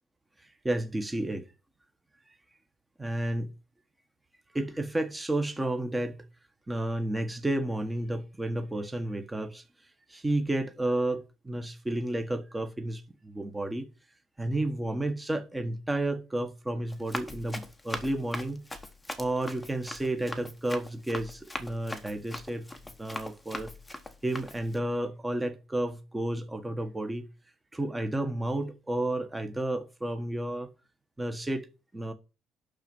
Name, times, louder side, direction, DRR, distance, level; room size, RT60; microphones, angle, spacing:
voice 1, 0.4-1.5 3.0-3.5 4.5-6.2 6.7-9.6 10.1-13.9 14.4-18.6 19.2-22.7 23.0-23.7 24.2-27.3 27.7-30.7 31.2-31.6 31.9-32.1, right 1 dB, 10° right, 1.4 m, -31 dB
Run, 16.9-24.8, left 2 dB, 10° left, 1.1 m, -41 dB
11.5 x 4.1 x 7.8 m
cardioid pair, 165°, 0 cm